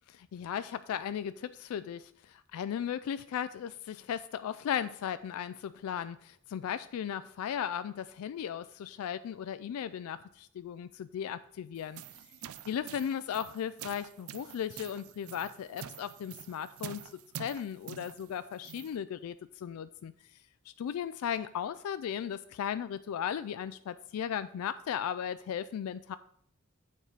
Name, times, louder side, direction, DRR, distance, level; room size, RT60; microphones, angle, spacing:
voice 1, 0.2-12.0 12.7-17.1 17.4-20.1 20.7-26.2, left 8 dB, 70° left, 14 dB, 0.3 m, -36 dB
sound 1, 11.8-19.0, right 9 dB, 70° right, 0.4 m, -47 dB
8.1 x 4.7 x 5.6 m, 0.67 s
head